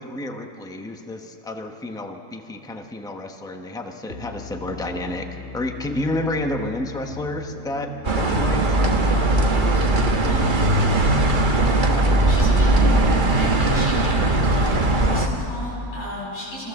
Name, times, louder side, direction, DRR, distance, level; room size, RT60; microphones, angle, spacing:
voice 1, 0.0-8.8, left 1 dB, 5° left, 4 dB, 0.9 m, -30 dB
sound 1, 4.1-16.1, left 4 dB, 50° left, 2.1 m, -37 dB
sound 2, 8.0-15.3, right 2 dB, 35° right, 1.2 m, -19 dB
voice 2, 9.5-11.0 11.6-11.8 12.2-16.7, equal, 70° left, -8 dB, 7.6 m, -33 dB
24.5 x 15.5 x 7.2 m, 2.8 s
omnidirectional pair, 1.6 m